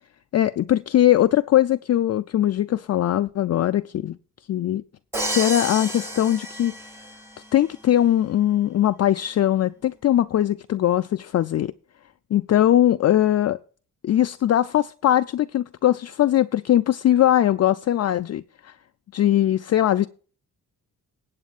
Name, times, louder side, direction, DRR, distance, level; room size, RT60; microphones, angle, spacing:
voice 1, 0.3-4.2 4.5-4.8 5.3-6.7 7.5-11.7 12.3-13.6 14.0-18.7 19.1-20.1, left 12 dB, 50° left, 0.4 m, -20 dB
Crash cymbal, 5.1-7.3, right 1 dB, 10° right, 2.3 m, -30 dB
19.5 x 8.1 x 2.4 m
cardioid pair, 90°, 34 cm